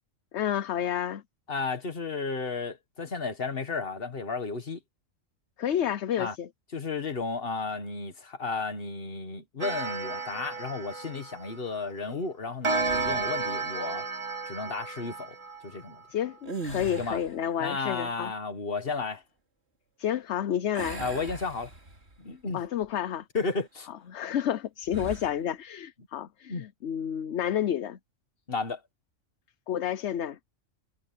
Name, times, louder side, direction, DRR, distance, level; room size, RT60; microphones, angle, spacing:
voice 1, 0.3-1.2 5.6-6.5 16.1-18.3 20.0-21.0 22.5-23.2 24.1-28.0 29.7-30.4, left 10 dB, 65° left, 1.0 m, -30 dB
voice 2, 1.5-4.8 6.2-6.4 6.7-14.0 14.4-15.4 15.6-16.0 17.0-17.2 17.6-19.2 21.0-21.7 22.2-22.6 23.3-23.9 26.5-26.7 28.5-28.8, left 4 dB, 45° left, 1.8 m, -33 dB
Clock, 9.6-11.9 12.6-16.0, right 3 dB, 25° right, 1.0 m, -32 dB
sound 1, 12.8-13.5 16.4-17.5 20.7-22.2 22.7-22.9 24.9-25.4, right 2 dB, 55° right, 3.3 m, -39 dB
omnidirectional pair, 1.3 m